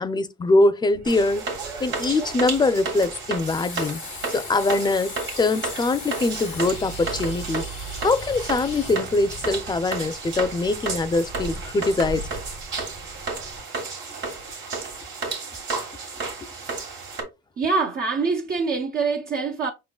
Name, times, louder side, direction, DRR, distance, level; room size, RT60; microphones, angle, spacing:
voice 1, 0.0-1.5 1.8-4.0 4.3-7.6 8.0-12.2, left 2 dB, 20° left, 0.5 m, -23 dB
sound 1, 0.9-13.6, right 2 dB, 90° right, 2.1 m, -40 dB
sound 2, 1.0-17.2, right 4 dB, 70° right, 1.7 m, -33 dB
sound 3, 3.4-8.9, left 9 dB, 90° left, 1.0 m, -40 dB
voice 2, 17.6-19.7, right 4 dB, 45° right, 0.6 m, -24 dB
5.6 x 3.7 x 2.3 m
cardioid pair, 90°, 20 cm